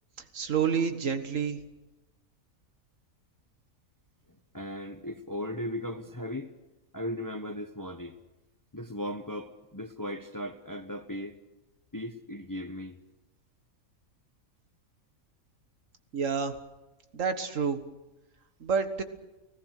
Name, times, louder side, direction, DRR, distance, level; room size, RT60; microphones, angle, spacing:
voice 1, 0.3-1.6 16.1-16.6 17.1-17.8 18.6-19.0, right 6 dB, 70° right, 1.8 m, -28 dB
voice 2, 4.3-6.5 6.9-8.2 8.7-11.4 11.9-13.0, left 1 dB, 15° left, 0.8 m, -37 dB
30.0 x 17.0 x 6.6 m
omnidirectional pair, 1.4 m